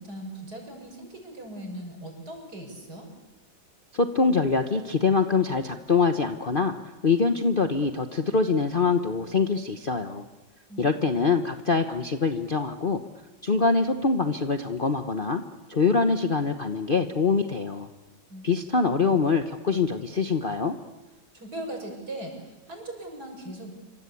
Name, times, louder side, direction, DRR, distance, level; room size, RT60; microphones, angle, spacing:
voice 1, 0.0-3.1 10.7-10.8 11.1-11.3 18.3-18.5 21.3-23.7, right 1 dB, 50° right, 2 dB, 7.2 m, -39 dB
voice 2, 3.9-6.7 7.0-10.2 10.8-13.0 13.4-15.4 15.7-17.9 18.4-20.8, left 4 dB, 35° left, 6 dB, 1.0 m, -24 dB
27.5 x 25.0 x 8.5 m, 1.1 s
omnidirectional pair, 2.1 m